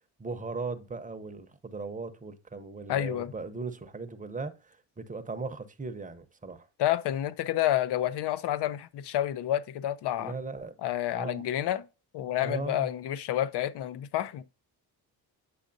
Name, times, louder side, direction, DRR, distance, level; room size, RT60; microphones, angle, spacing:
voice 1, 0.2-6.7 10.2-10.7 11.1-11.4 12.4-12.9, right 4 dB, 20° right, 0.7 m, -38 dB
voice 2, 2.9-3.3 6.8-10.3 10.8-11.8 12.1-14.4, left 12 dB, 85° left, 0.7 m, -29 dB
8.6 x 6.3 x 2.6 m
cardioid pair, 125°, 39 cm